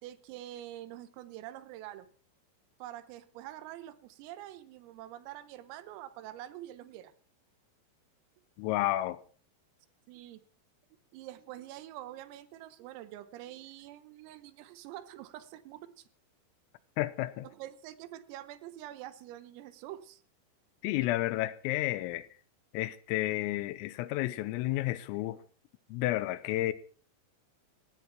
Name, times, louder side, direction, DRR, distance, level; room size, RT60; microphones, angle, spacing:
voice 1, 0.0-2.1 2.8-7.1 10.1-10.4 11.1-16.1 17.4-20.2, right 13 dB, 85° right, 3.8 m, -46 dB
voice 2, 8.6-9.2 17.0-17.5 20.8-22.3 22.7-25.4 25.9-26.7, left 16 dB, 85° left, 3.6 m, -31 dB
18.0 x 15.5 x 4.3 m
omnidirectional pair, 5.9 m